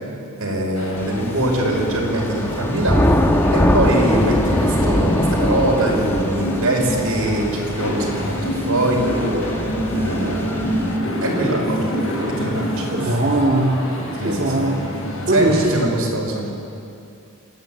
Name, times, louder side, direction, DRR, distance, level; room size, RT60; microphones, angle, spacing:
voice 1, 0.4-3.0 3.5-9.3 9.9-10.9 11.2-12.0 12.3-13.2 14.2-14.7 15.3-16.5, right 1 dB, 85° right, -1 dB, 5.2 m, -23 dB
sound 1, 0.7-15.7, equal, 80° left, 5.7 m, -27 dB
Thunder / Rain, 1.0-10.9, left 1 dB, 10° left, 1.1 m, -22 dB
voice 2, 12.9-13.8 14.2-14.8 15.3-15.7, right 1 dB, 45° right, -4 dB, 2.5 m, -19 dB
28.0 x 10.5 x 9.4 m, 2.6 s
head